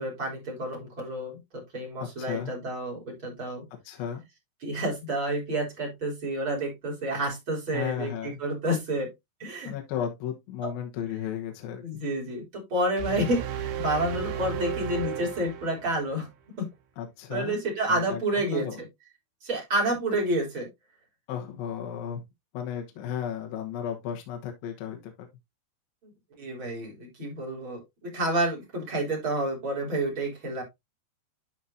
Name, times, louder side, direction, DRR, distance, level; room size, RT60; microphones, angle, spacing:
voice 1, 0.0-3.6 4.6-9.1 9.4-9.7 10.6-10.7 11.8-16.3 16.6-16.7 17.3-18.8 19.4-20.7 26.4-30.6, right 1 dB, 30° right, 3.8 m, -29 dB
voice 2, 2.2-2.5 3.8-4.2 7.7-8.4 9.6-11.8 17.0-17.6 17.9-18.7 21.3-22.2 22.5-25.1, left 9 dB, 70° left, 2.8 m, -34 dB
sound 1, 13.0-16.2, right 8 dB, 75° right, 3.0 m, -33 dB
12.0 x 4.3 x 2.7 m
omnidirectional pair, 4.6 m